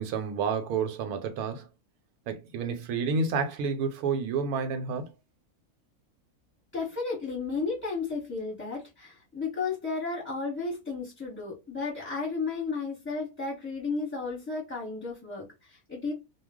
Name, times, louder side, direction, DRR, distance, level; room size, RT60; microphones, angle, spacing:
voice 1, 0.0-1.7 2.3-5.1, right 5 dB, 90° right, 1.1 m, -30 dB
voice 2, 6.7-16.1, left 4 dB, 10° left, 0.8 m, -33 dB
2.3 x 2.2 x 3.4 m
omnidirectional pair, 1.5 m